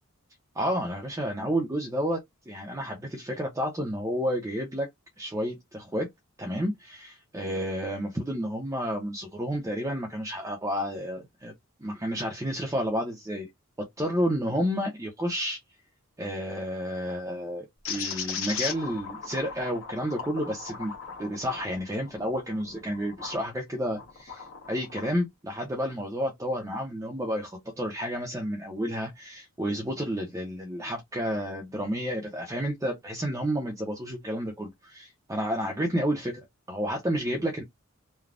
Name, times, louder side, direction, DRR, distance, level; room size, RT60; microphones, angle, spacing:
voice 1, 0.5-2.2 2.5-4.9 5.2-6.1 6.4-11.5 11.8-13.5 13.8-15.6 16.2-20.9 21.2-37.6, equal, 15° right, 0.6 m, -31 dB
sound 1, 17.8-23.4 23.9-25.1, left 6 dB, 60° left, 1.2 m, -37 dB
3.2 x 2.2 x 2.5 m
head